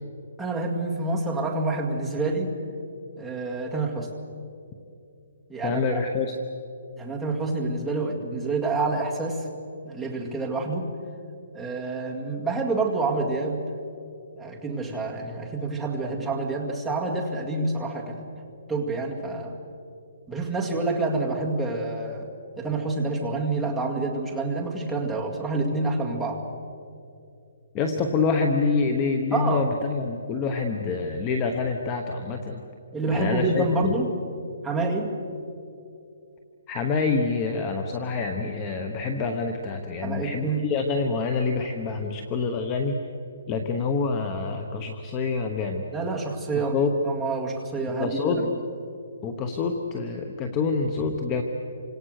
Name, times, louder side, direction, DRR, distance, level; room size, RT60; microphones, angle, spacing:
voice 1, 0.4-2.6 3.2-4.1 5.5-6.0 7.0-9.5 9.8-10.9 11.5-13.7 14.4-18.3 18.7-19.6 20.3-22.3 22.6-26.4 29.3-29.7 32.9-34.1 34.6-35.1 40.0-40.6 45.9-46.8 47.0-48.5, right 3 dB, ahead, -3 dB, 2.1 m, -28 dB
voice 2, 5.6-6.3 27.7-32.6 33.1-33.9 36.7-43.0 43.5-45.9 46.7-46.9 48.0-48.4 49.2-51.4, left 4 dB, 15° left, 4 dB, 1.1 m, -26 dB
28.5 x 26.0 x 6.6 m, 2.6 s
hypercardioid pair, 175°, 0 cm